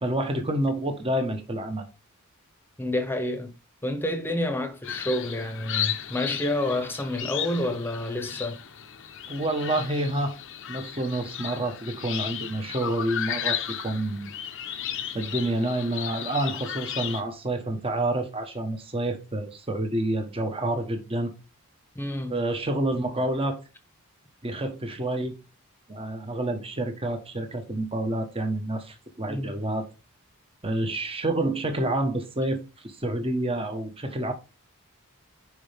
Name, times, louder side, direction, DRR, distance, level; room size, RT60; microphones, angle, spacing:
voice 1, 0.0-1.8 9.3-10.3 10.7-14.3 15.1-21.3 22.3-23.6 24.4-25.3 25.9-29.9 30.6-34.3, right 1 dB, 25° right, 1.2 m, -28 dB
voice 2, 2.8-3.5 3.8-8.6 21.9-22.4 29.3-29.6, left 1 dB, 10° left, 1.1 m, -29 dB
sound 1, 4.8-17.2, left 10 dB, 60° left, 0.9 m, -34 dB
9.7 x 4.7 x 3.5 m
head